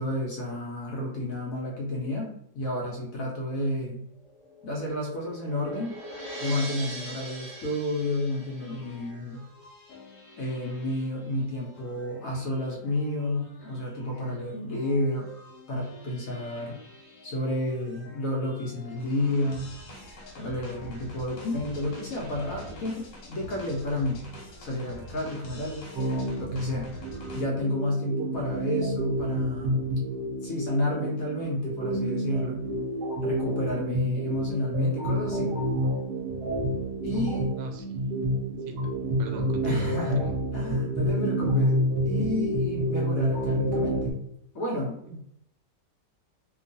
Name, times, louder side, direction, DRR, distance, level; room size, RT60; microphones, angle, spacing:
voice 1, 0.0-4.0 4.6-5.9 6.4-9.4 10.4-15.3 15.7-16.8 17.2-19.7 20.4-24.2 24.6-25.9 26.4-26.9 27.3-29.8 30.4-32.6 33.2-35.6 37.0-37.5 39.6-40.3 40.5-44.1 44.5-45.0, left 1 dB, 65° left, -2 dB, 0.9 m, -30 dB
sound 1, 4.2-9.1, right 1 dB, 25° right, 0.6 m, -41 dB
sound 2, 8.6-27.4, left 1 dB, 85° left, 1.4 m, -46 dB
sound 3, 26.0-44.1, right 1 dB, 70° right, 1.2 m, -29 dB
voice 2, 37.6-38.1 38.7-38.8 39.2-40.3 45.0-45.2, right 2 dB, 85° right, 4 dB, 1.3 m, -40 dB
3.0 x 2.3 x 2.6 m, 0.73 s
omnidirectional pair, 1.9 m